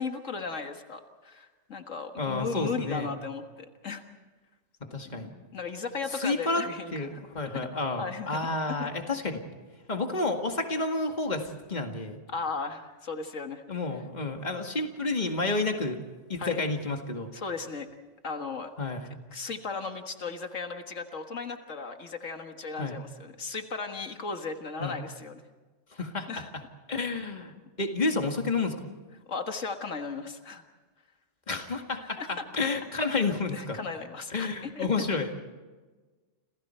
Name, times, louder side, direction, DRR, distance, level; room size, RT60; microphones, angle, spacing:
voice 1, 0.0-4.0 5.1-7.2 8.0-8.4 8.8-8.9 12.3-13.6 16.4-16.6 17.3-17.9 18.2-18.7 19.3-25.4 26.3-26.5 29.3-30.6 32.2-32.4 32.9-33.1 33.5-34.9, left 4 dB, 85° left, 5 dB, 2.0 m, -36 dB
voice 2, 2.2-3.1 4.9-5.3 6.1-6.7 6.9-9.4 9.9-12.2 13.7-16.0 16.3-17.3 18.8-19.2 22.8-23.0 24.8-25.0 25.9-26.3 26.9-28.9 31.5-33.8 34.3-35.4, left 3 dB, 35° left, 4 dB, 2.2 m, -30 dB
30.0 x 27.0 x 4.5 m, 1.3 s
omnidirectional pair, 1.3 m